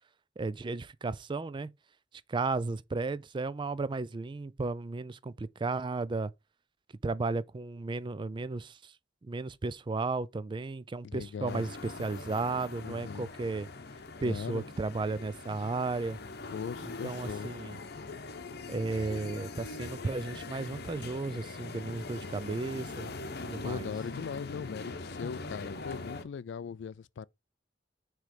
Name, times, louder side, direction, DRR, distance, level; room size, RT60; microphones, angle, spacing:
voice 1, 0.4-1.7 2.3-6.3 7.0-8.9 9.2-13.7 14.2-16.2 16.8-17.8 18.7-23.1 23.4-23.9, right 3 dB, 25° right, 0.4 m, -34 dB
voice 2, 11.0-11.6 12.8-13.3 14.2-14.6 16.5-17.6 23.6-27.3, left 6 dB, 75° left, 0.3 m, -39 dB
sound 1, 11.5-26.2, left 3 dB, 60° left, 0.8 m, -42 dB
6.3 x 3.2 x 5.1 m
head